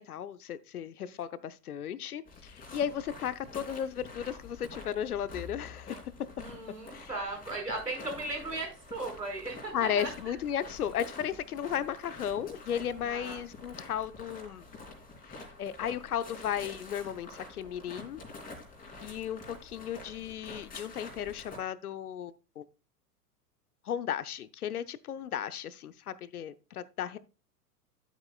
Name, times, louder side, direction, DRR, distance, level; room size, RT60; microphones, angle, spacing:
voice 1, 0.0-6.1 6.9-7.1 9.7-14.6 15.3-18.2 19.0-22.6 23.8-27.2, left 9 dB, 65° left, 0.9 m, -35 dB
sound 1, 2.3-21.6, left 3 dB, 15° left, 3.1 m, -47 dB
voice 2, 6.3-10.3 13.0-13.4 18.9-19.2, right 2 dB, 85° right, 5.1 m, -38 dB
12.0 x 8.3 x 2.3 m
figure-of-eight pair, 95°, 48 cm